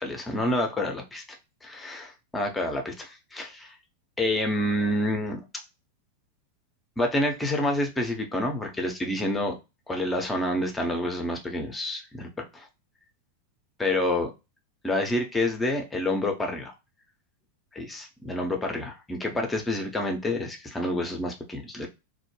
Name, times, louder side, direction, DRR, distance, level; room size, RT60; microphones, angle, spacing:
voice 1, 0.0-3.7 4.2-5.4 7.0-9.5 9.9-12.7 13.8-14.3 14.8-16.7 17.7-21.9, left 1 dB, 10° left, 3 dB, 0.6 m, -28 dB
2.1 x 2.0 x 3.0 m, 0.25 s
figure-of-eight pair, 90°, 0 cm